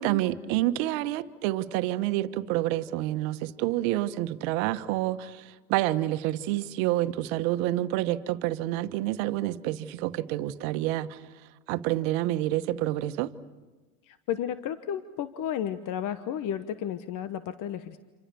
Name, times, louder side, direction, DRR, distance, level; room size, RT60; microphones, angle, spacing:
voice 1, 0.0-11.2 11.7-13.3, right 15 dB, 65° right, 11 dB, 1.4 m, -28 dB
voice 2, 14.1-18.0, left 10 dB, 45° left, 11 dB, 1.1 m, -33 dB
28.0 x 27.5 x 7.0 m, 1.3 s
supercardioid pair, 100°, 44 cm